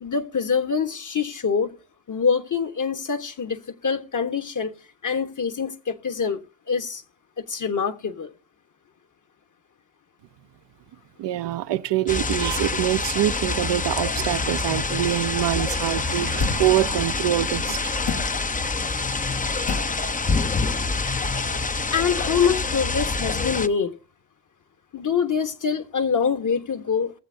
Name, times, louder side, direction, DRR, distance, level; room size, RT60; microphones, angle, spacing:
voice 1, 0.0-1.7 2.1-4.7 5.0-6.4 6.7-7.0 7.5-8.3 21.9-23.9 24.9-27.1, left 6 dB, 40° left, 1.3 m, -25 dB
voice 2, 11.2-18.2, right 13 dB, 65° right, 0.7 m, -25 dB
sound 1, 12.1-23.7, left 3 dB, 20° left, 0.6 m, -26 dB
sound 2, 16.4-16.8 18.1-18.4 19.7-20.0, left 3 dB, 70° left, 1.8 m, -27 dB
19.5 x 7.5 x 2.7 m
supercardioid pair, 50°, 45 cm